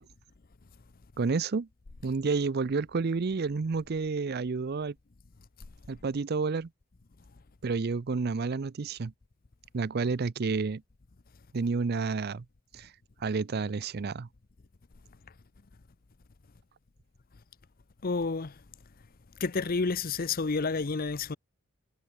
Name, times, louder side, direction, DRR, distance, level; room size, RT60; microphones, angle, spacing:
voice 1, 1.2-1.7 2.0-4.9 5.9-6.7 7.6-9.1 9.7-10.8 11.5-12.4 12.7-12.9 13.2-14.3, right 4 dB, 45° right, 0.5 m, -30 dB
voice 2, 18.0-18.5 19.4-21.4, left 4 dB, 45° left, 0.7 m, -30 dB
head